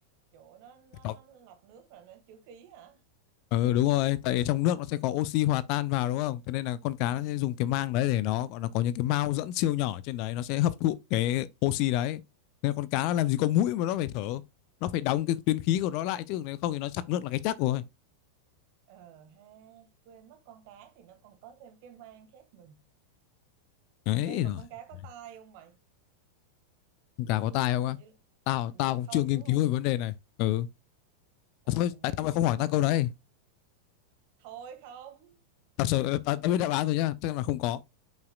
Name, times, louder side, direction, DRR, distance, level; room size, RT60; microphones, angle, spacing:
voice 1, 0.3-3.0 7.1-7.5 18.9-22.8 24.2-25.8 27.9-28.1 28.6-29.6 31.6-32.6 34.4-35.4, right 9 dB, 45° right, 2.2 m, -50 dB
voice 2, 3.5-12.2 12.6-14.4 14.8-17.8 24.1-24.6 27.2-28.0 28.5-30.7 31.7-33.1 35.8-37.8, left 14 dB, 45° left, 0.5 m, -27 dB
9.0 x 5.7 x 2.3 m
figure-of-eight pair, 90°, 0 cm